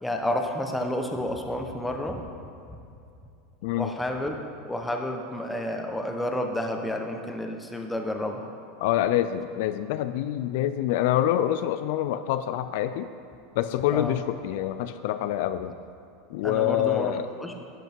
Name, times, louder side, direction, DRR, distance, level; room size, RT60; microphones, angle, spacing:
voice 1, 0.0-2.3 3.8-4.4 4.7-8.5 13.9-14.2 16.4-17.1 17.4-17.7, left 1 dB, 5° left, 3 dB, 1.1 m, -30 dB
voice 2, 8.8-13.1 13.6-15.7 16.3-17.3, left 12 dB, 70° left, 11 dB, 0.4 m, -26 dB
12.5 x 8.1 x 4.6 m, 2.6 s
supercardioid pair, 125°, 0 cm